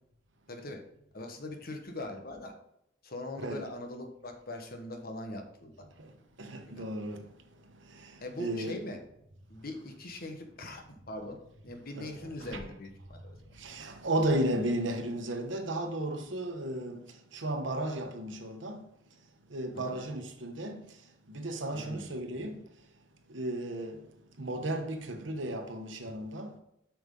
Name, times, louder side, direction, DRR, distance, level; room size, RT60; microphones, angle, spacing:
voice 1, 0.5-0.8 1.1-2.5 3.0-5.8 6.8-6.9 8.2-9.0 9.5-13.3 19.7-20.0 21.7-22.2, left 1 dB, 50° left, 1.2 m, -41 dB
voice 2, 6.4-7.2 8.0-8.1 8.4-8.8 11.9-12.6 13.6-17.0 17.3-18.8 19.5-20.8 21.3-22.6 23.3-24.0 24.4-26.5, right 1 dB, 70° right, 1.1 m, -34 dB
7.4 x 6.1 x 3.7 m
head